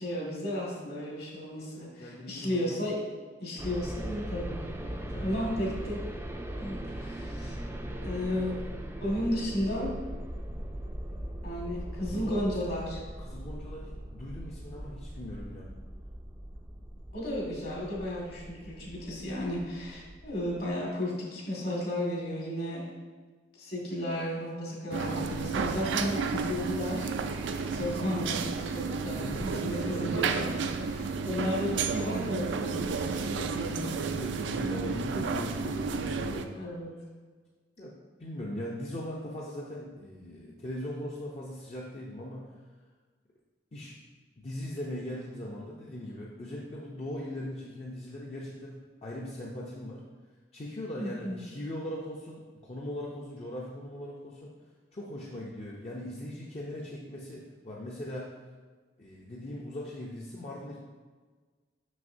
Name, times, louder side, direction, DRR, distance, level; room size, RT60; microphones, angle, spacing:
voice 1, 0.0-3.0 3.4-4.6 5.2-6.0 6.5-7.6 7.9-8.6 9.0-9.9 11.4-13.0 17.1-22.9 23.6-34.0 36.6-36.9 51.0-51.4, left 1 dB, 60° left, -3 dB, 1.8 m, -34 dB
voice 2, 1.7-2.7 4.9-5.8 12.0-12.4 13.2-15.7 29.2-30.3 34.1-36.5 37.8-42.5 43.7-44.0 44.4-50.0 50.5-54.5 54.9-58.3 59.0-60.8, left 1 dB, 35° left, -4 dB, 0.6 m, -40 dB
sound 1, 3.6-20.7, right 1 dB, 15° right, 0.4 m, -40 dB
sound 2, 24.9-36.5, right 4 dB, 80° right, 0.4 m, -32 dB
6.3 x 5.7 x 2.6 m, 1.4 s
head